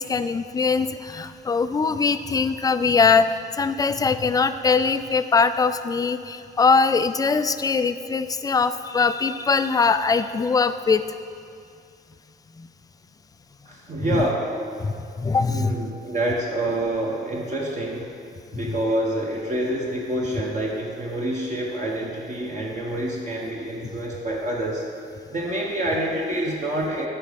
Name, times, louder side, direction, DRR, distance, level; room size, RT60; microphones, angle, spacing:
voice 1, 0.0-3.3 3.6-11.0 12.6-12.7 14.1-14.3 14.8-15.8 18.7-18.8, left 5 dB, 20° left, 11 dB, 0.3 m, -22 dB
voice 2, 13.6-14.5 15.5-18.1 18.5-24.8 25.3-27.1, right 1 dB, 40° right, -3 dB, 1.1 m, -27 dB
11.5 x 4.2 x 5.2 m, 2.4 s
cardioid pair, 90°, 20 cm